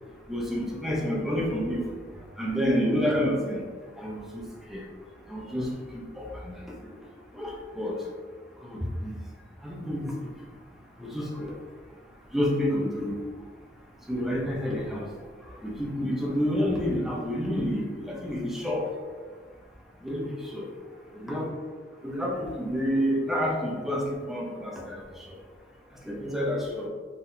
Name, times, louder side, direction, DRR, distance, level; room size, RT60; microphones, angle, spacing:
voice 1, 0.3-2.0 2.4-3.6 4.0-4.8 5.3-7.0 7.3-8.0 8.6-9.1 9.6-10.3 11.0-11.6 12.3-13.2 14.1-15.1 15.4-18.9 20.0-20.7 21.1-21.5 22.0-25.4 26.0-26.9, equal, ahead, -3 dB, 0.7 m, -29 dB
4.1 x 3.7 x 2.7 m, 1.6 s
head